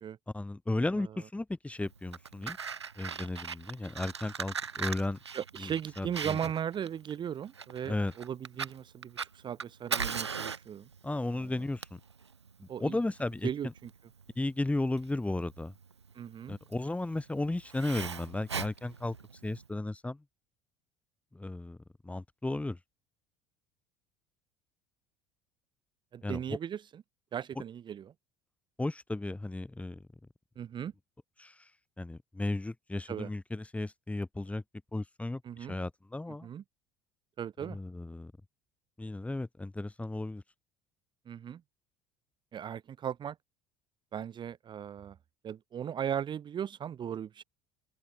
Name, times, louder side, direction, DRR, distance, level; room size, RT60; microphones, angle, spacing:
voice 1, 0.3-2.6 3.0-5.2 5.6-6.4 7.8-8.1 11.0-12.0 12.6-13.7 14.4-15.7 16.5-19.2 19.4-20.2 21.3-21.8 22.0-22.8 26.2-26.4 28.8-30.0 31.4-31.6 32.0-34.6 34.9-36.5 37.6-38.3 39.0-40.4, left 2 dB, 10° left, 3.5 m, -34 dB
Fire, 1.9-19.7, right 6 dB, 80° right, 1.1 m, -40 dB
voice 2, 5.3-10.9 11.4-11.5 12.7-13.0 13.4-13.9 16.1-16.6 26.1-27.0 27.3-28.1 30.6-30.9 33.1-33.3 35.4-35.7 36.4-36.6 37.4-37.8 41.3-41.6 42.5-43.4 44.1-45.2 45.4-47.4, right 9 dB, 35° right, 1.3 m, -37 dB
figure-of-eight pair, 65°, 14 cm